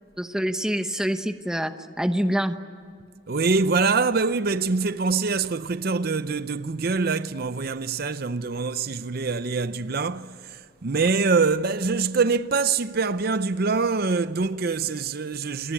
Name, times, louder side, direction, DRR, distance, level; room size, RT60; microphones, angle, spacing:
voice 1, 0.2-2.6, equal, 5° right, 0.9 m, -26 dB
voice 2, 3.3-15.7, right 4 dB, 50° right, 0.6 m, -24 dB
28.0 x 20.0 x 9.8 m
head